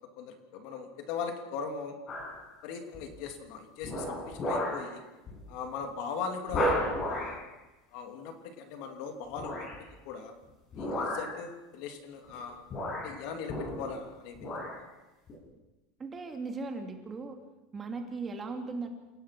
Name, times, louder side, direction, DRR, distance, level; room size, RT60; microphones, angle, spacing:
voice 1, 0.2-2.0 2.6-5.0 5.5-7.4 7.9-10.3 10.7-12.6 13.0-14.5, left 5 dB, 55° left, 6 dB, 3.1 m, -39 dB
sound 1, 2.1-2.4 2.9-3.3 3.8-4.9 5.3-5.4 5.8-5.9 6.5-7.4 9.3-9.8 10.7-11.4 12.3-12.4 12.7-14.0 14.3-14.8 15.3-15.4, left 1 dB, 30° left, 7.4 m, -33 dB
voice 2, 16.0-17.4 17.7-18.9, right 3 dB, 20° right, 5 dB, 2.5 m, -37 dB
28.0 x 17.5 x 6.1 m, 1.1 s
supercardioid pair, 145°, 0 cm